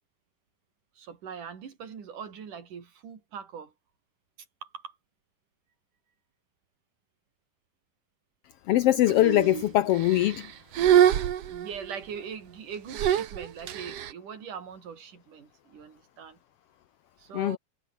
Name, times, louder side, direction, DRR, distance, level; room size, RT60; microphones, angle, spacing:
voice 1, 1.0-3.7 4.6-4.9 11.5-16.4 17.2-17.6, right 7 dB, 90° right, 4.8 m, -41 dB
voice 2, 8.7-10.5 17.3-17.6, left 14 dB, 90° left, 1.3 m, -22 dB
sound 1, 9.1-9.6 10.0-10.5 10.7-11.9 12.9-14.1, right 10 dB, 60° right, 2.2 m, -24 dB
omnidirectional pair, 3.5 m